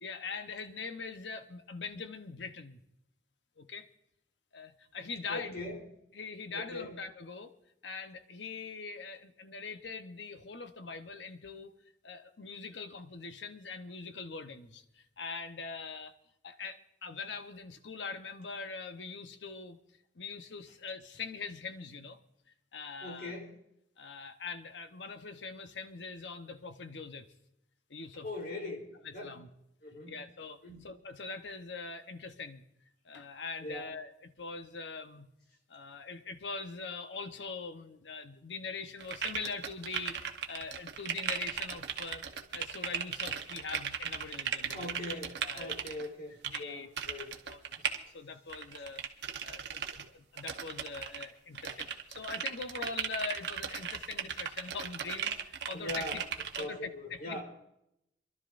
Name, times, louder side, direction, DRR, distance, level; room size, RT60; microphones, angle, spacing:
voice 1, 0.0-2.8 3.6-3.9 4.5-5.6 6.1-7.6 7.8-11.7 12.0-16.1 16.4-19.8 20.2-22.2 22.7-23.4 24.0-27.3 27.9-28.3 29.0-29.5 30.1-32.6 33.0-35.3 35.7-42.2 42.5-44.9 45.4-45.7 46.4-47.8 48.1-49.0 49.4-56.2 56.6-57.4, left 4 dB, 80° left, 8 dB, 1.0 m, -42 dB
voice 2, 5.3-5.8 6.5-6.9 23.0-23.6 28.2-29.3 29.8-30.1 30.6-30.9 33.6-33.9 44.7-47.3 47.8-47.9 55.7-56.2 56.6-57.4, left 2 dB, 60° left, 1 dB, 3.6 m, -41 dB
sound 1, 39.0-46.1 46.4-46.6 47.0-48.0 48.5-50.1 50.4-51.2 51.5-56.6, right 7 dB, 70° right, 1.0 m, -37 dB
27.5 x 12.0 x 2.6 m, 0.80 s
head